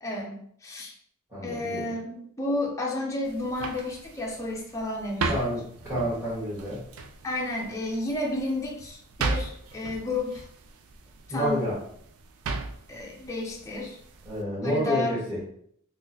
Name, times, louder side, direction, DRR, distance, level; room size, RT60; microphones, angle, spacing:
voice 1, 0.0-0.9 1.4-5.5 7.2-10.4 11.3-11.6 12.9-14.0 14.6-15.2, left 2 dB, 15° left, -2 dB, 0.5 m, -31 dB
voice 2, 1.3-1.9 5.3-6.8 11.3-11.8 14.2-15.4, equal, 15° right, -10 dB, 1.2 m, -29 dB
sound 1, 3.2-14.4, right 3 dB, 75° right, 0.4 m, -37 dB
3.7 x 2.5 x 2.7 m, 0.67 s
head